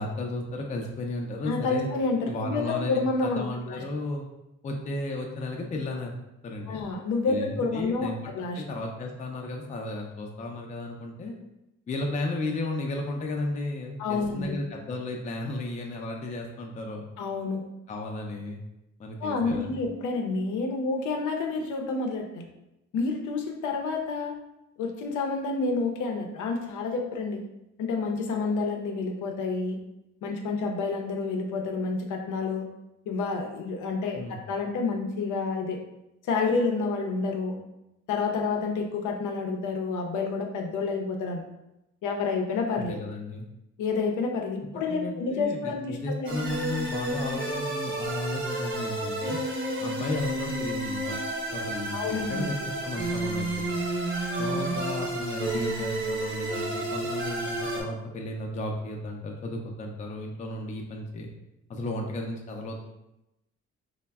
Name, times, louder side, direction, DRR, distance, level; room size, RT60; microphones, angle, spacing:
voice 1, 0.0-1.9 2.3-4.2 4.6-6.1 6.4-6.8 7.3-8.2 8.6-11.3 11.9-17.1 17.9-18.6 19.0-19.8 34.2-34.4 42.8-43.5 44.7-49.4 49.8-51.2 51.5-53.6 54.4-61.3 61.7-62.8, left 2 dB, 25° left, 1 dB, 0.4 m, -34 dB
voice 2, 1.5-3.8 6.7-8.6 14.0-14.6 17.2-17.6 19.2-22.5 22.9-24.3 24.8-27.4 27.8-29.8 30.2-32.7 33.1-35.8 36.3-37.6 38.1-41.4 42.0-43.0 43.8-46.5 51.9-52.5 54.7-54.8, left 4 dB, 80° left, 3 dB, 0.5 m, -29 dB
sound 1, 46.2-57.8, right 1 dB, 40° right, 0.7 m, -31 dB
3.2 x 2.0 x 2.2 m, 0.90 s
cardioid pair, 90°, 30 cm